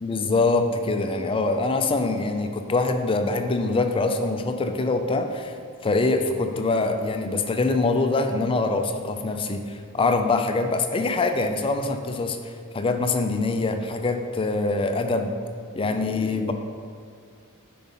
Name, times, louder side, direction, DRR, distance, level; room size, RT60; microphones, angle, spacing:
voice 1, 0.0-5.5 5.8-15.3 15.7-16.5, left 3 dB, 25° left, 6 dB, 0.4 m, -24 dB
5.4 x 4.6 x 5.5 m, 2.3 s
head